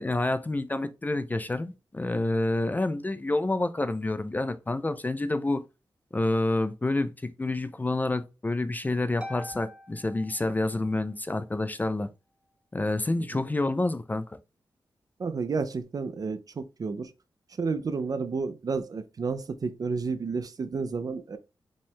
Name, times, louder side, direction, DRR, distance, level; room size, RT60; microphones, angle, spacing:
voice 1, 0.0-5.6 6.1-12.1 12.7-14.4, left 2 dB, 20° left, 0.4 m, -28 dB
Harp, 9.2-11.1, left 1 dB, 10° right, 0.7 m, -44 dB
voice 2, 15.2-17.1 17.6-21.4, right 4 dB, 50° right, 0.5 m, -31 dB
5.1 x 2.3 x 3.5 m
wide cardioid pair, 125°, 8 cm